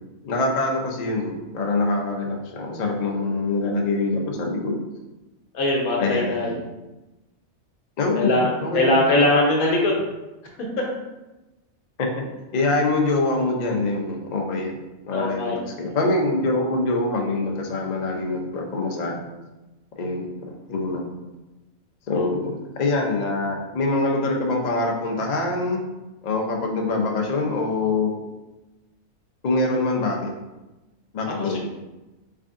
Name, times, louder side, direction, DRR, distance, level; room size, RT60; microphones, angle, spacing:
voice 1, 0.2-4.7 6.0-6.6 8.0-9.0 12.0-12.2 12.5-14.8 15.0-19.2 20.0-21.0 22.1-25.8 26.2-28.2 29.4-30.3 31.1-31.6, left 2 dB, 65° left, 0 dB, 0.4 m, -24 dB
voice 2, 5.5-6.6 8.2-10.0 15.1-15.5 31.3-31.6, left 1 dB, 85° left, -1 dB, 1.3 m, -21 dB
3.6 x 3.4 x 2.5 m, 1.1 s
omnidirectional pair, 1.5 m